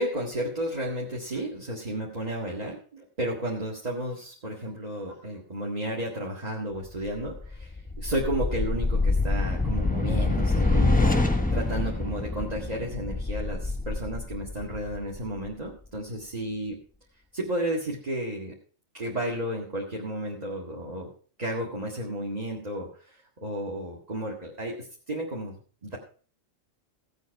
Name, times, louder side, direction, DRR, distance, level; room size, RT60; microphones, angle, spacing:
voice 1, 0.0-16.8 17.3-18.6 18.9-21.1 21.4-25.6 25.8-26.0, right 1 dB, 30° right, -2 dB, 2.0 m, -33 dB
sound 1, 7.2-15.5, left 3 dB, 5° left, 1.2 m, -26 dB
16.0 x 8.1 x 4.7 m, 0.42 s
omnidirectional pair, 1.3 m